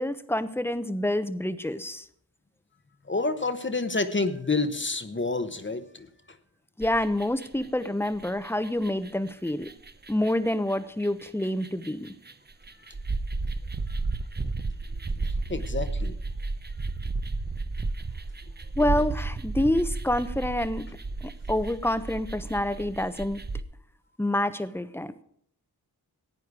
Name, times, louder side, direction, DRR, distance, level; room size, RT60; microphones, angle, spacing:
voice 1, 0.0-2.0 6.8-9.7 10.1-12.1 18.8-20.9 21.2-23.4 24.2-25.2, left 1 dB, 5° left, 12 dB, 0.9 m, -27 dB
voice 2, 3.1-6.1 15.5-16.2, left 3 dB, 30° left, 9 dB, 1.1 m, -28 dB
sound 1, 6.8-7.7 8.0-23.6, right 3 dB, 25° right, 0.8 m, -33 dB
15.0 x 9.2 x 4.8 m, 0.67 s
cardioid pair, 60°, 39 cm